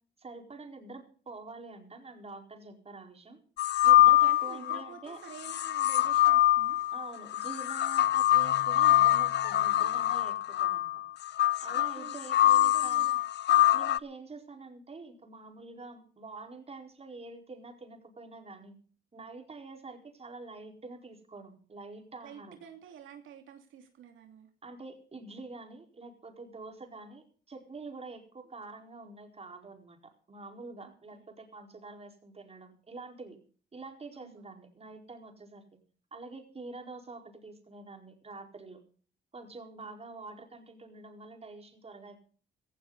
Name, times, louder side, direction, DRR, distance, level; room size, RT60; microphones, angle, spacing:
voice 1, 0.2-3.4 3.8-5.2 6.9-10.9 11.6-13.1 13.7-18.8 19.1-22.6 24.6-33.4 33.7-35.7 36.1-38.8 39.3-42.2, right 3 dB, 30° right, 3 dB, 4.6 m, -46 dB
sound 1, 3.6-4.8 5.4-14.0, left 14 dB, 60° left, 0.6 m, -24 dB
voice 2, 4.2-6.8 12.0-13.2 22.2-24.5 31.1-31.2 34.1-34.5 39.6-39.7, right 8 dB, 80° right, 4 dB, 2.6 m, -49 dB
16.5 x 15.0 x 4.0 m, 0.42 s
cardioid pair, 90°, 20 cm